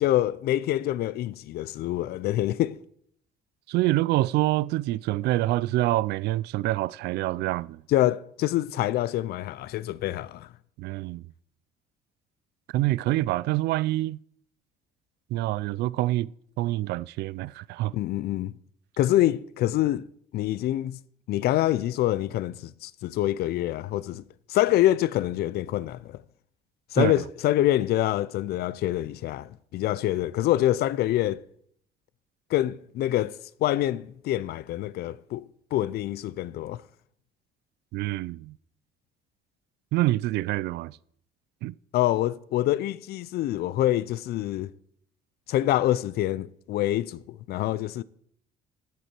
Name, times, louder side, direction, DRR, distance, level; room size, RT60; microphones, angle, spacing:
voice 1, 0.0-2.8 7.9-10.5 17.9-18.5 19.0-20.1 20.3-21.0 21.3-24.2 24.5-26.2 26.9-31.4 32.5-36.8 41.9-44.7 45.5-48.0, left 14 dB, 70° left, 0.5 m, -26 dB
voice 2, 3.7-7.8 10.8-11.2 12.7-14.2 15.3-16.3 16.6-17.9 27.0-27.1 37.9-38.6 39.9-41.0 41.6-41.7, right 16 dB, 80° right, 0.4 m, -26 dB
14.0 x 8.3 x 4.5 m
cardioid pair, 110°, 17 cm